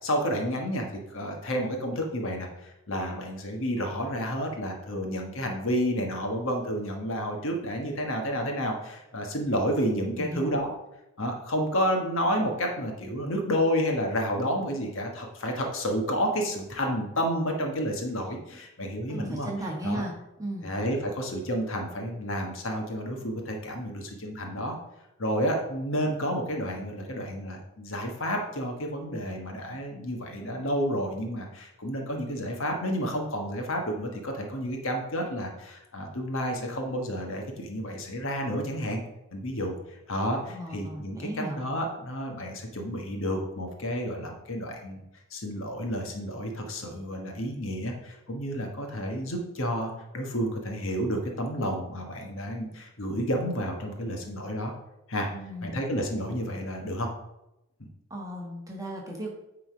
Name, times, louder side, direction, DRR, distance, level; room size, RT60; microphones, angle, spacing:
voice 1, 0.0-10.7 11.2-19.5 19.8-20.0 20.6-24.8 25.2-39.0 39.3-39.7 40.1-41.3 41.6-45.0 45.3-54.7 55.1-55.3 55.6-57.1 57.8-57.9, equal, 65° left, 2 dB, 1.4 m, -30 dB
voice 2, 10.1-10.6 18.5-18.6 19.1-20.1 20.4-20.7 40.5-41.6 55.3-55.8 58.1-59.3, right 1 dB, 15° right, -1 dB, 1.4 m, -35 dB
9.3 x 3.9 x 5.0 m, 0.90 s
head